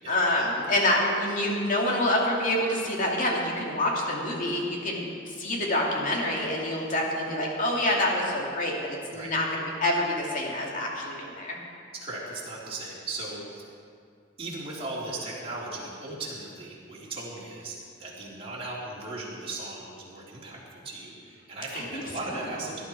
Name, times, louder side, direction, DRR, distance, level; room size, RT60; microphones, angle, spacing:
voice 1, 0.1-11.6 21.7-22.0 22.3-22.6, left 1 dB, 45° left, -2 dB, 2.6 m, -27 dB
voice 2, 11.9-13.7 14.4-22.8, right 2 dB, 30° right, -6 dB, 3.5 m, -37 dB
18.0 x 11.5 x 4.7 m, 2.3 s
head